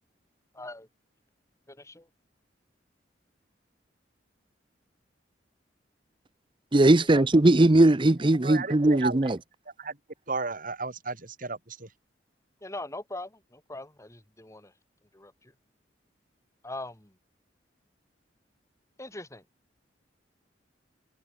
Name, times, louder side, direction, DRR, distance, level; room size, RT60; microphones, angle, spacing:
voice 1, 0.5-0.9 1.7-2.1 7.1-7.3 12.6-14.7 15.1-15.5 16.6-17.1 19.0-19.4, left 2 dB, 15° left, 3.0 m, -41 dB
voice 2, 6.7-9.4, right 2 dB, 25° right, 0.7 m, -19 dB
voice 3, 8.4-9.3 9.8-10.0 10.3-11.9, right 3 dB, 50° right, 4.3 m, -34 dB
head